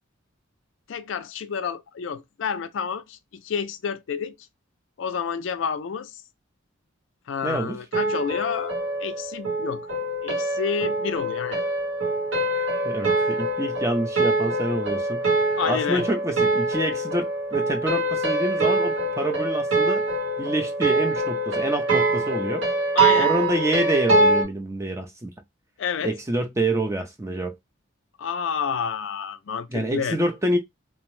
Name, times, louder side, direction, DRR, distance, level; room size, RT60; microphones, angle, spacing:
voice 1, 0.9-4.3 5.0-6.2 7.3-9.9 10.2-11.6 15.6-16.0 22.9-23.3 25.8-26.2 28.2-30.2, left 6 dB, 65° left, 0.4 m, -29 dB
voice 2, 7.4-7.8 12.5-20.0 20.4-22.6 23.2-25.3 26.0-27.6 29.7-30.6, right 1 dB, 15° right, 0.4 m, -27 dB
sound 1, 7.9-24.4, right 2 dB, 75° right, 1.3 m, -24 dB
2.7 x 2.0 x 3.0 m
head